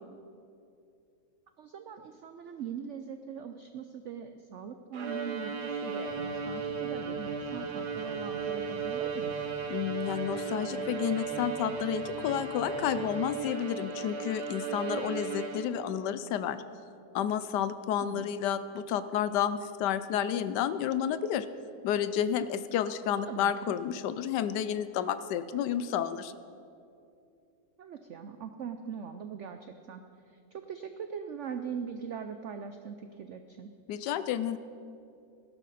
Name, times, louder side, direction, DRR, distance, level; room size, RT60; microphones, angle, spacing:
voice 1, 1.6-9.4 18.0-18.3 23.3-23.7 27.8-33.7, right 7 dB, 90° right, 7 dB, 0.6 m, -41 dB
Bowed string instrument, 4.9-16.0, right 5 dB, 65° right, 1.5 m, -35 dB
sound 1, 6.0-13.2, right 1 dB, 10° left, 2.4 m, -49 dB
voice 2, 9.7-16.6 17.1-21.5 21.8-26.3 33.9-34.6, left 9 dB, 75° left, 13 dB, 1.1 m, -31 dB
16.5 x 11.5 x 4.1 m, 2.5 s
omnidirectional pair, 1.9 m